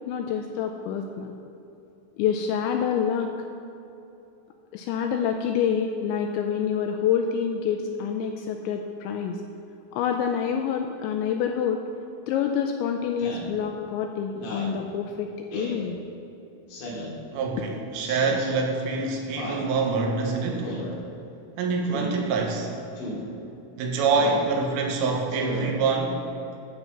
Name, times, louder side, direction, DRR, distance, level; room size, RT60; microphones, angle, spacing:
voice 1, 0.1-1.3 2.2-3.3 4.7-9.4 9.9-11.8 12.3-16.0, left 7 dB, 85° left, 4 dB, 2.6 m, -27 dB
Speech synthesizer, 13.2-13.5 14.3-14.7 15.5-15.8 16.7-17.1 18.0-18.5 19.3-19.7 20.6-20.9 21.8-22.1 23.0-23.2 24.1-24.5 25.3-25.7, left 1 dB, 70° left, 4.3 m, -35 dB
voice 2, 17.3-20.7 21.6-22.7 23.8-26.2, right 4 dB, 85° right, 1 dB, 3.7 m, -25 dB
12.0 x 5.4 x 7.0 m, 2.9 s
omnidirectional pair, 5.7 m